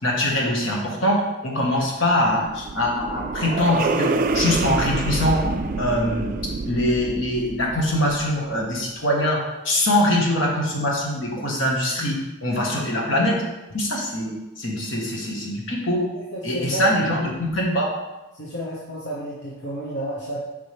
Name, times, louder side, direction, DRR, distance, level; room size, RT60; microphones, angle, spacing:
voice 1, 0.0-5.4 5.8-6.3 6.6-13.4 13.7-16.1 16.4-17.9, left 1 dB, 70° left, -2 dB, 1.5 m, -23 dB
sound 1, 2.1-8.6, right 3 dB, 40° right, 0.3 m, -27 dB
voice 2, 16.3-16.9 18.4-20.4, right 1 dB, 55° left, -5 dB, 1.0 m, -30 dB
7.1 x 5.2 x 3.4 m, 1.0 s
head